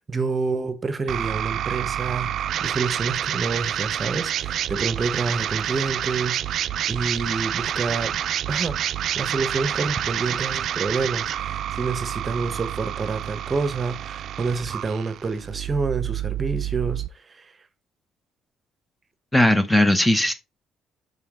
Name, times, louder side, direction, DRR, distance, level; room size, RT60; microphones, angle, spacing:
voice 1, 0.0-8.2 8.5-8.8 9.1-17.6, right 4 dB, 30° right, 1.0 m, -28 dB
sound 1, 1.1-17.1, right 10 dB, 65° right, 0.4 m, -28 dB
voice 2, 19.3-20.3, left 1 dB, 10° left, 0.8 m, -18 dB
5.6 x 5.5 x 3.7 m
cardioid pair, 90°, 0 cm